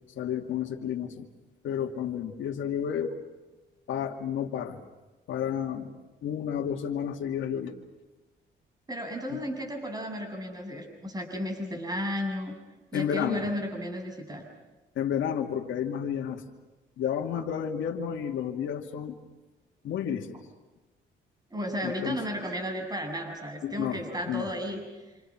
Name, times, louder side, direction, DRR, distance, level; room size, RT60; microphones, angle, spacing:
voice 1, 0.2-1.3 1.6-3.1 3.9-4.8 5.3-5.9 6.2-7.8 9.3-9.4 12.9-13.4 15.0-16.4 17.0-19.2 19.8-20.4 21.8-22.2 23.6-24.5, left 9 dB, 75° left, 1 dB, 2.7 m, -31 dB
voice 2, 8.9-12.5 12.9-14.5 17.3-17.5 21.5-24.8, equal, 20° right, 4 dB, 7.1 m, -34 dB
28.5 x 27.5 x 6.2 m, 1.1 s
cardioid pair, 90°, 20 cm